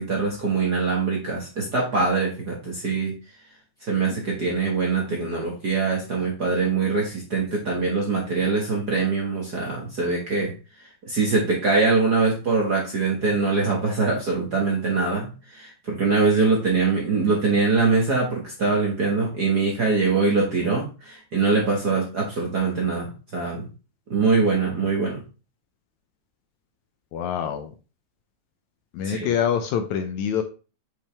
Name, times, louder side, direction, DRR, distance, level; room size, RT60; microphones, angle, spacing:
voice 1, 0.0-3.1 3.9-10.5 11.0-23.6 24.1-25.2 29.0-29.3, right 4 dB, 45° right, -2 dB, 1.4 m, -23 dB
voice 2, 27.1-27.7 28.9-30.4, left 8 dB, 75° left, 7 dB, 1.9 m, -25 dB
7.0 x 5.4 x 3.4 m, 0.33 s
omnidirectional pair, 3.7 m